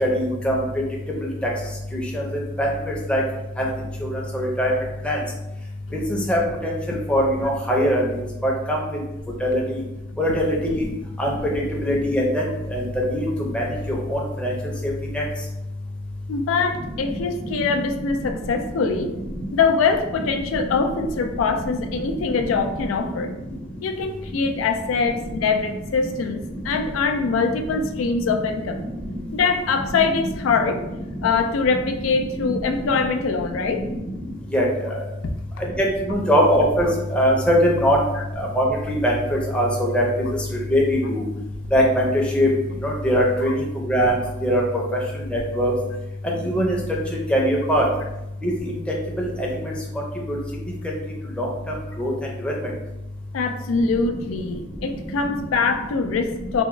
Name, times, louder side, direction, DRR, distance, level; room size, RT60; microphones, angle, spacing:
voice 1, 0.0-0.6 2.1-2.2 2.6-2.7 3.1-3.2 3.6-3.7 4.0-4.7 5.0-5.2 6.1-8.0 8.4-8.8 9.4-9.8 10.2-10.8 11.2-11.3 11.8-12.4 12.7-12.8 13.1-13.2 13.5-14.5 15.1-15.2 34.5-34.7 35.8-36.9 37.1-38.0 38.4-40.0 40.7-41.2 41.7-42.1 42.4-42.5 42.8-44.1 44.4-44.6 45.3-45.7 46.2-46.8 47.3-47.8 48.4-48.5 49.2-49.5 51.4-51.5 52.0-52.1 52.4-52.5, equal, 5° left, -3 dB, 0.5 m, -21 dB
voice 2, 16.3-19.1 19.5-23.3 23.8-28.8 29.3-30.8 31.2-33.8 38.2-38.3 53.3-56.6, left 4 dB, 90° left, 6 dB, 0.4 m, -23 dB
3.4 x 2.1 x 3.0 m, 0.92 s
head